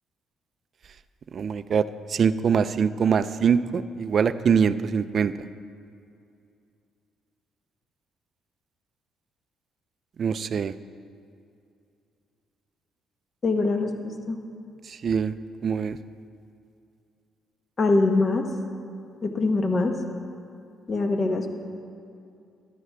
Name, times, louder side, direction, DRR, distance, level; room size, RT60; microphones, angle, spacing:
voice 1, 1.3-5.3 10.2-10.7 14.9-15.3 15.6-16.0, right 6 dB, 40° right, 14 dB, 0.3 m, -23 dB
voice 2, 13.4-14.4 17.8-18.4 19.2-19.9 20.9-21.5, left 3 dB, 30° left, 5 dB, 0.9 m, -23 dB
14.0 x 11.0 x 3.4 m, 2.5 s
cardioid pair, 150°, 0 cm